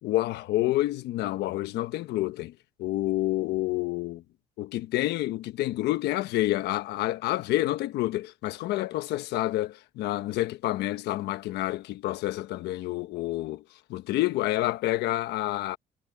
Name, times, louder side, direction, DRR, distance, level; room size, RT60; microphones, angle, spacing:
voice 1, 0.0-4.2 4.6-13.6 13.9-15.8, left 16 dB, 80° left, 1.1 m, -28 dB
cardioid pair, 110°, 17 cm